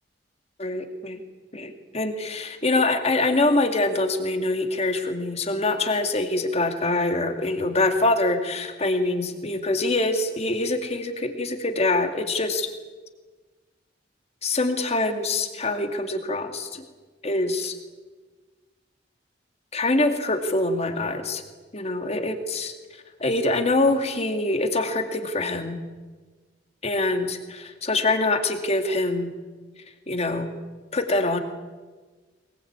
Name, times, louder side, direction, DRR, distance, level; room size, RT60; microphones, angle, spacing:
voice 1, 0.6-1.2 1.5-12.7 14.4-16.8 17.2-17.7 19.7-21.4 21.7-22.7 23.2-25.8 26.8-29.3 30.1-30.5 30.9-31.4, left 2 dB, 35° left, 6 dB, 2.4 m, -24 dB
22.5 x 21.0 x 8.9 m, 1.4 s
head